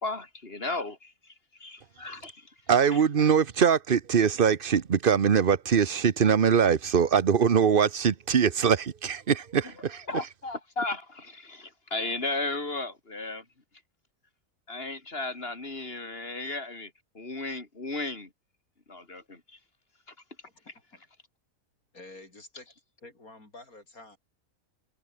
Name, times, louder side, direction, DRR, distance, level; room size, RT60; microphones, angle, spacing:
voice 1, 0.0-1.3 1.6-2.5 2.9-3.0 10.1-13.4 14.7-16.9 17.2-18.3 18.9-19.4, left 2 dB, 40° left, 3.5 m, -35 dB
voice 2, 2.7-10.0, right 7 dB, 40° right, 1.1 m, -22 dB
voice 3, 20.4-21.0 21.9-22.7 23.0-24.2, left 2 dB, 75° left, 6.2 m, -49 dB
omnidirectional pair, 1.5 m